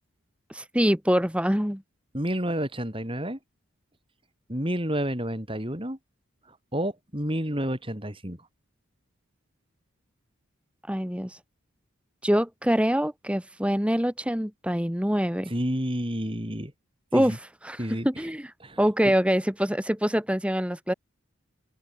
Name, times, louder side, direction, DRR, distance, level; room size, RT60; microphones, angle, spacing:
voice 1, 0.5-1.8 10.9-11.4 12.2-15.5 17.1-17.4 17.6-17.8 18.0-18.5 18.8-20.9, equal, 5° right, 1.9 m, -24 dB
voice 2, 2.1-3.4 4.5-6.0 6.7-8.4 15.5-16.7 17.1-17.4 17.8-18.1 18.6-18.8 19.0-19.1, equal, 25° right, 4.6 m, -29 dB
open air
head